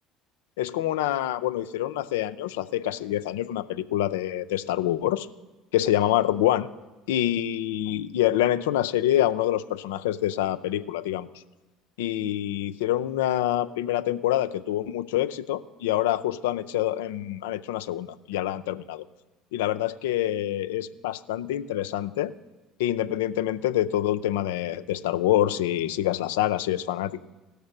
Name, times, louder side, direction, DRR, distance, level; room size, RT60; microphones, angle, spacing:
voice 1, 0.6-5.3 5.7-6.7 7.1-11.3 12.0-19.1 19.5-22.3 22.8-27.2, left 13 dB, 85° left, 12 dB, 0.4 m, -26 dB
16.0 x 6.6 x 6.5 m, 1.2 s
hypercardioid pair, 75°, 0 cm